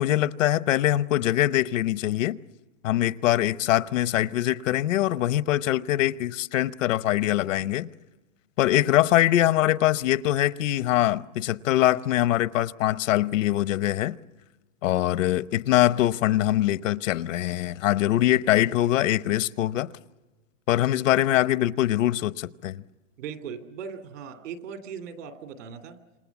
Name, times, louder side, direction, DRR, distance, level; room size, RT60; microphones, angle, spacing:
voice 1, 0.0-2.4 2.8-7.9 8.6-14.2 14.8-19.9 20.7-22.8, left 14 dB, 75° left, 0.9 m, -23 dB
voice 2, 23.2-26.0, right 7 dB, 75° right, 2.9 m, -38 dB
27.5 x 26.0 x 7.1 m
supercardioid pair, 175°, 38 cm